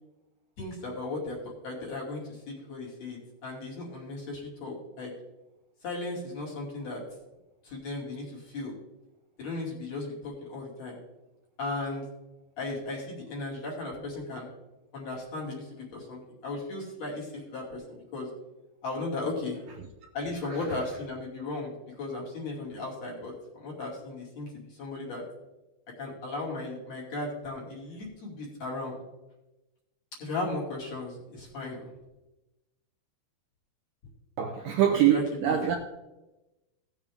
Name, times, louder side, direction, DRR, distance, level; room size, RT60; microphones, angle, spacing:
voice 1, 0.6-5.1 5.8-7.0 7.6-8.7 9.4-11.0 11.6-12.1 12.6-14.5 14.9-18.3 18.8-19.6 20.1-21.7 22.0-25.2 26.0-29.0 30.2-31.9 35.1-35.2 35.5-35.6, left 2 dB, 45° left, -4 dB, 3.4 m, -36 dB
voice 2, 34.4-35.8, right 10 dB, 75° right, 3 dB, 2.2 m, -24 dB
17.0 x 7.2 x 3.6 m, 1.0 s
omnidirectional pair, 4.6 m